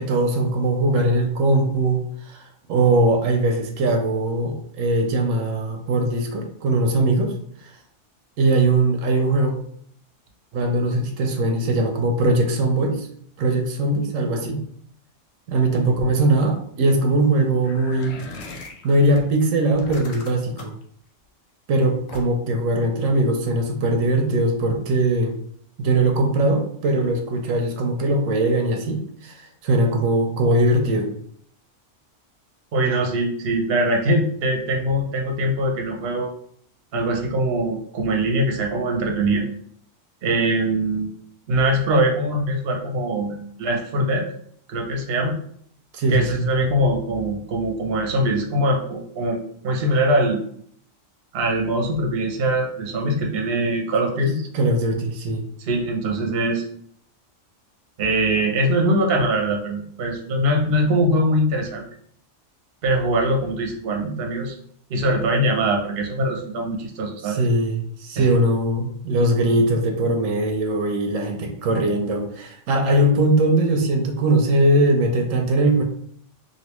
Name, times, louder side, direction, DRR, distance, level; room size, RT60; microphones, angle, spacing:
voice 1, 0.0-2.4 2.7-7.3 8.4-9.6 10.5-13.1 13.4-14.6 15.5-18.2 18.8-20.7 21.7-25.3 25.8-31.1 45.9-46.5 53.2-53.3 54.5-55.4 64.0-64.2 67.2-75.8, right 2 dB, 90° right, 4 dB, 1.0 m, -20 dB
sound 1, 17.6-19.2 19.7-20.8 22.1-22.5, left 3 dB, 90° left, 1.0 m, -39 dB
voice 2, 32.7-36.3 36.9-39.5 40.2-41.1 41.5-44.3 44.7-45.3 46.1-50.4 51.3-54.4 55.6-56.6 58.0-61.8 62.8-64.5 64.9-67.4 68.2-68.4, right 1 dB, 55° right, 1 dB, 0.8 m, -22 dB
3.2 x 2.6 x 3.0 m, 0.63 s
omnidirectional pair, 1.3 m